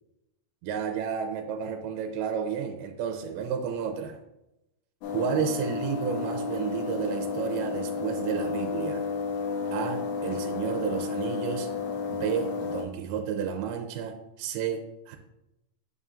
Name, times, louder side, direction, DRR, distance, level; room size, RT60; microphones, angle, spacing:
voice 1, 0.6-4.2 5.1-9.0 9.7-11.7 12.1-15.2, right 7 dB, 85° right, 4 dB, 2.5 m, -31 dB
sound 1, 5.0-12.8, left 4 dB, 75° left, 1.9 m, -32 dB
6.8 x 5.8 x 2.4 m, 0.88 s
omnidirectional pair, 4.4 m